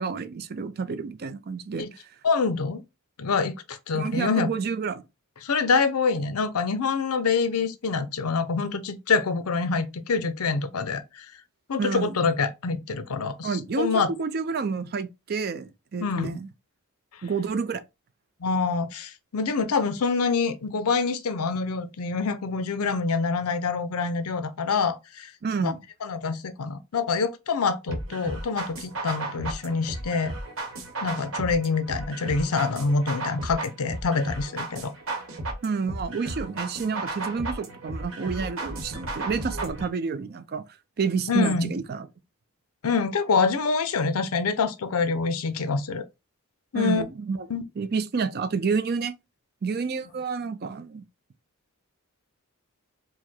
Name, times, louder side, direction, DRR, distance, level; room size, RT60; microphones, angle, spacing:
voice 1, 0.0-1.9 3.9-5.0 11.8-12.2 13.4-16.5 17.2-17.8 25.4-25.8 35.6-40.6 41.0-42.1 46.7-47.5 47.8-49.1 49.6-51.0, right 5 dB, 45° right, 0.4 m, -29 dB
voice 2, 2.2-2.8 3.2-4.5 5.4-11.3 11.7-14.1 16.0-16.3 18.4-25.3 25.6-25.7 26.0-30.3 31.0-34.9 41.3-41.7 42.8-46.0 46.7-47.0 47.5-47.6, left 4 dB, 75° left, 0.6 m, -26 dB
sound 1, 27.9-39.9, right 2 dB, 65° right, 1.2 m, -34 dB
4.7 x 2.1 x 4.3 m
head